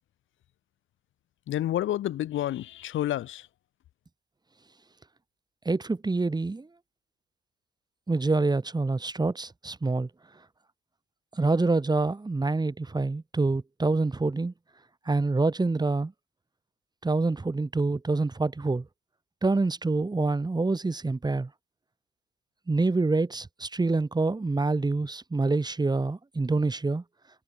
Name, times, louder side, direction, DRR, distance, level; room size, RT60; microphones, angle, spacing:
voice 1, 1.5-3.5, left 13 dB, 75° left, 2.5 m, -29 dB
voice 2, 5.6-6.7 8.1-10.1 11.4-14.5 15.1-16.1 17.0-18.9 19.4-21.5 22.7-27.0, right 3 dB, 20° right, 2.9 m, -26 dB
cardioid pair, 90°, 20 cm